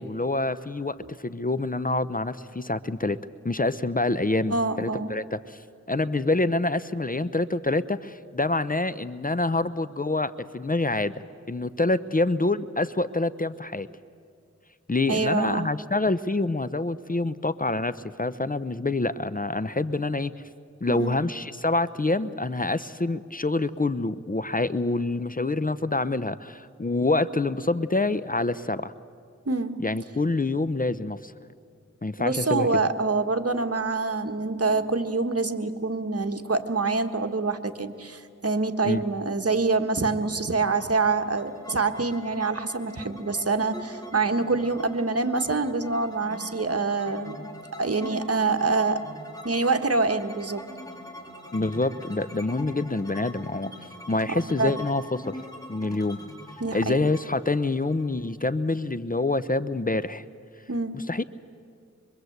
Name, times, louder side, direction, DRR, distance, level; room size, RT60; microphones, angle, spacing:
voice 1, 0.0-3.2 3.4-5.6 5.9-13.9 14.9-20.3 20.8-28.9 29.8-31.3 32.0-32.7 38.8-39.0 51.5-53.7 54.1-55.4 55.7-56.2 56.7-60.2 60.9-61.2, left 2 dB, 30° left, 14 dB, 0.8 m, -26 dB
voice 2, 4.5-5.1 15.1-15.7 21.0-21.2 29.4-29.7 32.2-47.4 47.8-49.0 49.4-50.6 54.3-54.7 56.6-57.0 60.7-61.0, right 3 dB, 55° right, 7 dB, 1.6 m, -26 dB
sound 1, 40.8-58.5, left 1 dB, 10° left, 4.4 m, -43 dB
24.5 x 23.0 x 8.1 m, 2.3 s
cardioid pair, 40°, 29 cm